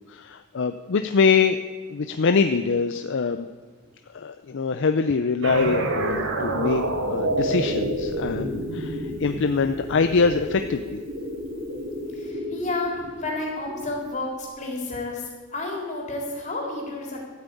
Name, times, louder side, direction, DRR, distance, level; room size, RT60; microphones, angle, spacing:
voice 1, 0.1-1.6 1.9-3.5 4.1-11.0, left 5 dB, 60° left, 8 dB, 0.5 m, -24 dB
sound 1, 5.4-10.7, right 1 dB, 65° right, 1.9 m, -27 dB
sound 2, 7.3-14.1 14.4-14.5, left 1 dB, 40° right, 3.1 m, -35 dB
voice 2, 12.1-17.2, left 2 dB, 35° left, -2 dB, 3.7 m, -31 dB
13.0 x 9.0 x 8.4 m, 1.5 s
head